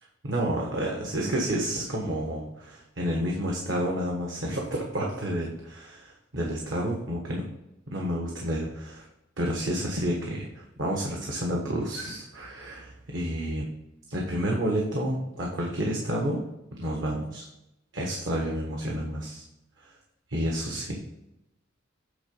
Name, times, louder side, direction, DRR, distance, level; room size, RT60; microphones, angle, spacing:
voice 1, 0.2-7.4 7.9-9.0 9.4-13.7 14.1-16.4 16.8-17.5 17.9-19.4 19.8-19.9 20.3-21.0, equal, 75° right, -1 dB, 1.3 m, -30 dB
8.7 x 3.9 x 5.4 m, 0.90 s
head